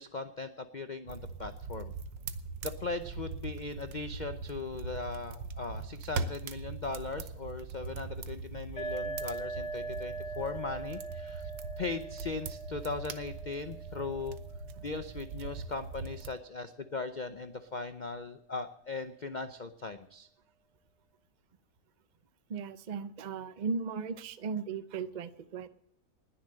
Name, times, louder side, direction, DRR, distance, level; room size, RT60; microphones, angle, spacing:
voice 1, 0.0-1.9 2.6-11.5 11.8-14.4 14.8-20.3, left 3 dB, 85° left, 10 dB, 0.4 m, -39 dB
sound 1, 1.1-16.3, right 4 dB, 90° right, 1.6 m, -41 dB
sound 2, 8.8-16.3, right 3 dB, 15° left, 3.1 m, -42 dB
voice 2, 22.5-25.7, right 5 dB, 65° right, 13 dB, 0.4 m, -36 dB
20.0 x 7.2 x 7.5 m, 0.76 s
omnidirectional pair, 1.9 m